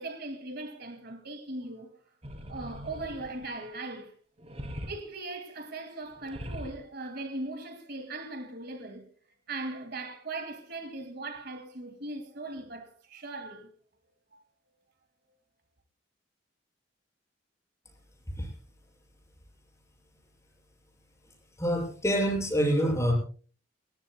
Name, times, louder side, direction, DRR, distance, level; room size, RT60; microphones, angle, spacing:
voice 1, 0.0-2.0 2.5-4.1 4.9-9.1 9.5-13.7 14.3-14.4, right 2 dB, 55° right, 2.4 m, -39 dB
sound 1, 2.2-3.7 4.4-4.9 6.1-6.8, equal, 35° right, 2.6 m, -41 dB
voice 2, 21.6-23.1, equal, 15° left, 6.8 m, -26 dB
29.5 x 15.0 x 2.3 m
head